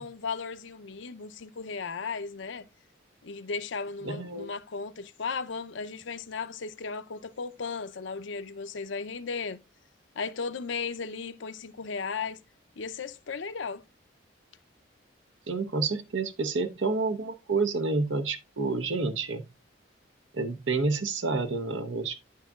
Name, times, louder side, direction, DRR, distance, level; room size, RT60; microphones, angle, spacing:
voice 1, 0.0-2.6 3.2-9.6 10.2-12.4 12.8-13.8, left 5 dB, 70° left, 0.6 m, -35 dB
voice 2, 4.0-4.5 15.5-19.5 20.3-22.2, right 3 dB, 75° right, 0.9 m, -29 dB
10.0 x 6.5 x 2.4 m
head